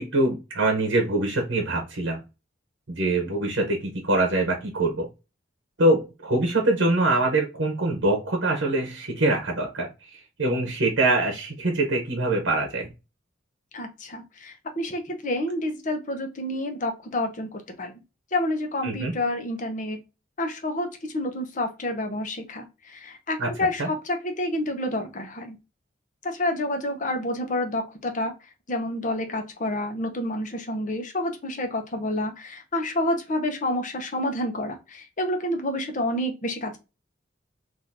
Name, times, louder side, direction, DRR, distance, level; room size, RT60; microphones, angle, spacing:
voice 1, 0.0-2.2 2.9-5.1 5.8-12.9 18.8-19.1 23.4-23.5 23.8-23.9, right 2 dB, 65° right, 2 dB, 0.9 m, -24 dB
voice 2, 13.7-17.9 18.3-20.0 20.4-20.9 21.1-25.6 26.2-28.3 28.7-36.8, left 1 dB, 40° left, 5 dB, 0.8 m, -29 dB
3.7 x 2.6 x 2.6 m, 0.27 s
head